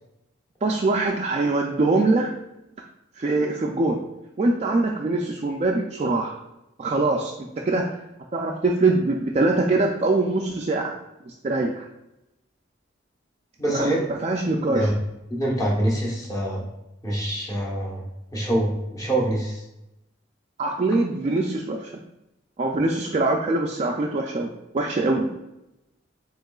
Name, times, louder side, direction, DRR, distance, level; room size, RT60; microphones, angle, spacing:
voice 1, 0.6-2.3 3.2-4.0 4.4-6.4 6.8-7.9 8.3-10.9 11.3-11.9 13.7-14.9 20.6-21.9 22.6-25.3, right 2 dB, 35° right, 0 dB, 0.3 m, -23 dB
voice 2, 13.6-14.0 14.5-15.0 15.3-16.7 17.0-18.1 18.3-19.6, right 1 dB, 20° left, -3 dB, 1.0 m, -25 dB
7.3 x 3.0 x 2.3 m, 0.92 s
head